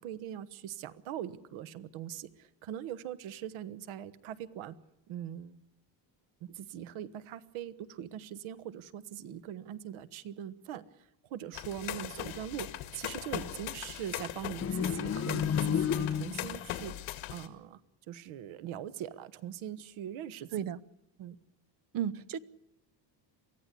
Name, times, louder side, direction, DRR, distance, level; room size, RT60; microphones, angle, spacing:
voice 1, 0.0-4.7 5.1-5.6 6.4-16.9 17.3-17.8 18.1-20.6 21.2-21.4, right 10 dB, 85° right, 15 dB, 1.4 m, -42 dB
sound 1, 11.5-17.5, left 13 dB, 75° left, 2.0 m, -40 dB
sound 2, 14.6-16.6, left 8 dB, 30° left, 1.3 m, -31 dB
voice 2, 21.9-22.4, right 9 dB, 45° right, 19 dB, 0.8 m, -33 dB
24.0 x 15.5 x 8.3 m, 0.88 s
cardioid pair, 165°, 48 cm